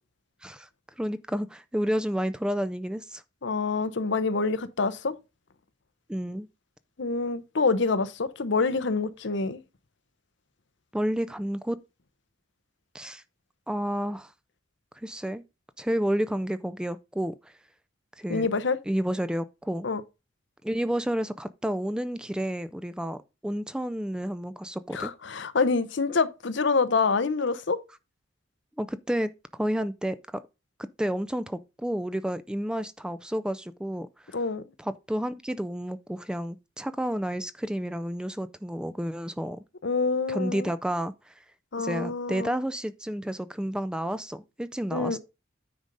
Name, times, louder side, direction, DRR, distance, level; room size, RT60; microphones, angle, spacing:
voice 1, 1.0-3.2 6.1-6.5 10.9-11.8 12.9-13.2 13.7-14.3 15.0-15.4 15.8-17.5 18.2-18.5 18.9-19.9 20.6-25.1 28.8-30.2 31.0-34.4 34.8-39.6 40.3-41.4 41.8-45.2, equal, 5° right, 0.3 m, -30 dB
voice 2, 3.4-5.1 7.0-9.6 18.3-18.8 19.8-20.0 24.9-27.8 34.3-34.6 39.8-40.7 41.7-42.5 44.9-45.2, left 4 dB, 65° left, 0.8 m, -26 dB
9.6 x 3.9 x 5.3 m
head